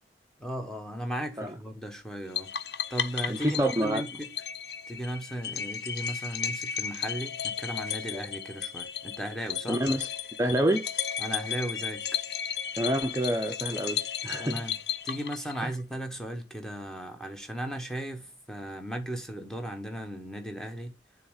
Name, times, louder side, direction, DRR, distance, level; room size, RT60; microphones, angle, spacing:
voice 1, 0.4-2.5 2.9-4.3 4.9-9.8 11.2-12.1 14.4-14.8 15.0-21.0, equal, 5° left, 1.1 m, -36 dB
sound 1, 2.4-15.8, left 8 dB, 65° left, 0.6 m, -34 dB
voice 2, 3.3-4.0 9.7-10.1 10.4-10.9 12.8-14.6 15.6-15.7, right 1 dB, 15° right, 0.6 m, -27 dB
7.1 x 3.6 x 6.3 m
head